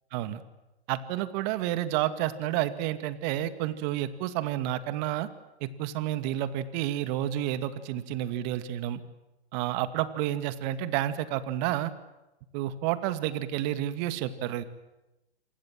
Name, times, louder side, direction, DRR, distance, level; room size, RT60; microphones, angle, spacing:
voice 1, 0.1-0.4 0.9-5.3 5.6-9.0 9.5-11.9 12.5-14.6, right 13 dB, 40° right, 11 dB, 2.2 m, -30 dB
27.5 x 26.5 x 7.7 m, 0.99 s
hypercardioid pair, 125°, 33 cm